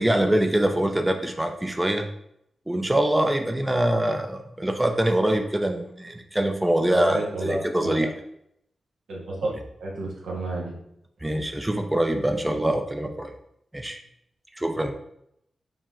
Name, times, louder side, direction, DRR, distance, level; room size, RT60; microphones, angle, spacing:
voice 1, 0.0-2.1 2.7-8.1 11.2-13.3 13.7-14.0 14.6-14.9, right 1 dB, 15° right, 5 dB, 0.4 m, -24 dB
voice 2, 6.9-8.1 9.1-9.5 9.8-10.7, right 2 dB, 90° right, -2 dB, 1.0 m, -31 dB
4.9 x 2.1 x 3.6 m, 0.75 s
cardioid pair, 75°, 0 cm